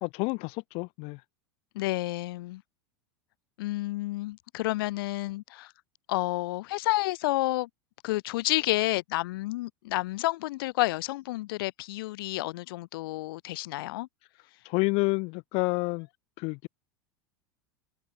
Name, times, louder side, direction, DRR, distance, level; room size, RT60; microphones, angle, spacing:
voice 1, 0.0-1.2 14.6-16.1 16.4-16.7, left 29 dB, 55° left, 0.8 m, -29 dB
voice 2, 1.7-2.6 3.6-5.7 6.1-7.7 8.0-14.1, left 19 dB, 70° left, 4.9 m, -30 dB
hypercardioid pair, 100°, 12 cm